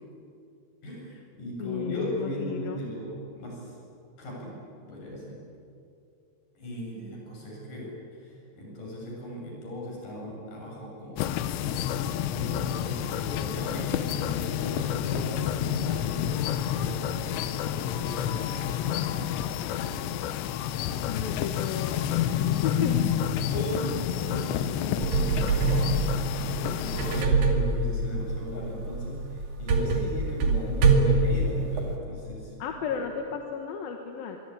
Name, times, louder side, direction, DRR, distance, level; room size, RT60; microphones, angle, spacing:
voice 1, 0.8-3.8 4.2-5.4 6.6-18.5 19.1-19.2 19.6-19.9 22.0-22.3 22.7-33.0, equal, 45° left, -2 dB, 8.7 m, -37 dB
voice 2, 1.6-2.8 21.1-22.3 22.6-22.9 32.6-34.4, left 7 dB, 65° left, 4 dB, 2.9 m, -34 dB
sound 1, 11.2-27.2, left 10 dB, 80° left, 3.2 m, -29 dB
sound 2, 25.0-31.9, right 3 dB, 55° right, 3.9 m, -25 dB
25.5 x 22.5 x 9.9 m, 2.6 s
omnidirectional pair, 5.1 m